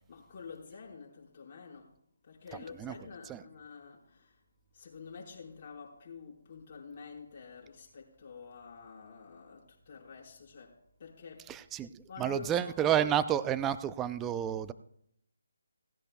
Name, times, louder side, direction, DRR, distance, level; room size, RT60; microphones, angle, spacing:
voice 1, 0.1-1.9 2.2-4.4 4.7-11.6 12.1-12.7, left 5 dB, 35° left, 4.8 m, -48 dB
voice 2, 2.5-3.0 3.3-3.4 11.4-14.7, right 10 dB, 15° right, 0.5 m, -31 dB
17.5 x 16.0 x 2.3 m
figure-of-eight pair, 155°, 0 cm